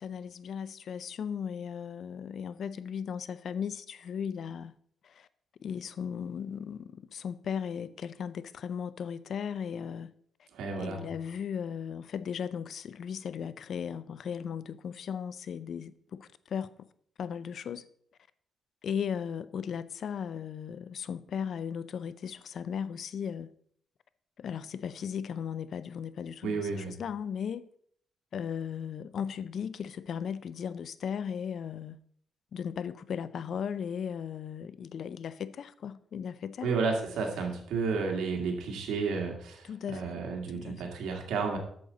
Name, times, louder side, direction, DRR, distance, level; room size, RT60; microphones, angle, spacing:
voice 1, 0.0-4.7 5.0-5.3 5.6-10.1 10.4-10.5 10.8-16.9 17.2-17.9 18.8-23.5 24.4-27.7 28.3-32.0 32.5-36.7 39.7-40.2 40.6-40.9, left 7 dB, 60° left, 0.4 m, -36 dB
voice 2, 10.5-11.0 26.4-26.9 36.6-41.6, right 4 dB, 90° right, 1.8 m, -32 dB
8.6 x 6.6 x 3.9 m
cardioid pair, 105°, 0 cm